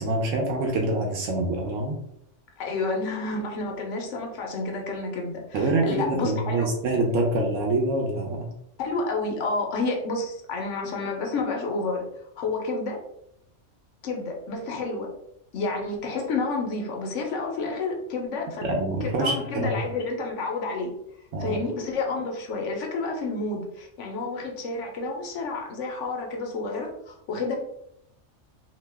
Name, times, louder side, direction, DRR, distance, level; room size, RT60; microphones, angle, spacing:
voice 1, 0.0-2.0 5.5-8.5 18.6-19.8 21.3-21.6, right 2 dB, 90° right, 0 dB, 1.0 m, -25 dB
voice 2, 2.6-6.7 8.8-12.0 12.4-13.0 14.0-15.1 15.5-18.6 19.2-20.9 21.4-27.5, left 3 dB, 80° left, 1 dB, 1.0 m, -30 dB
2.8 x 2.1 x 3.3 m, 0.77 s
omnidirectional pair, 1.3 m